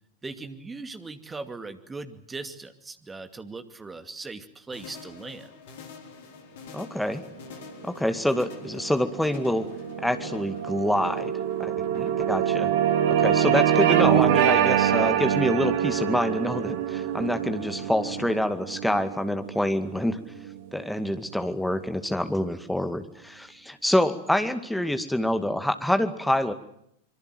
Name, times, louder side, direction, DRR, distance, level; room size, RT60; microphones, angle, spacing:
voice 1, 0.2-5.5 11.9-12.1, right 3 dB, 15° right, 9 dB, 2.5 m, -39 dB
sound 1, 4.7-18.3, left 6 dB, 55° left, 4.5 m, -46 dB
voice 2, 6.7-7.2 7.8-9.6 10.0-11.3 11.6-11.9 12.2-12.7 13.1-20.2 20.7-26.5, left 1 dB, ahead, 8 dB, 2.1 m, -26 dB
sound 2, 8.2-20.8, right 10 dB, 50° right, 2.2 m, -25 dB
25.5 x 23.5 x 7.8 m, 0.73 s
figure-of-eight pair, 90°, 0 cm